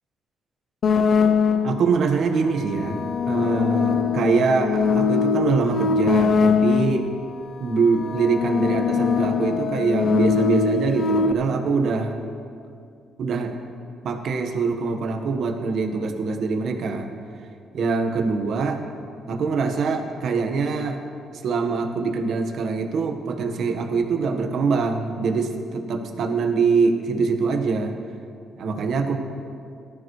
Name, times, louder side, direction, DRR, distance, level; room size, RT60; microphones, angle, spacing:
sound 1, 0.8-1.9 2.7-7.2 7.9-11.3, left 5 dB, 55° left, 0.6 m, -22 dB
voice 1, 1.6-7.1 7.6-12.1 13.2-13.6 14.0-17.1 17.7-18.8 19.3-21.0 21.4-27.9 28.6-29.2, right 4 dB, 65° right, 5 dB, 1.4 m, -23 dB
19.0 x 13.5 x 3.2 m, 2.4 s
cardioid pair, 90°, 0 cm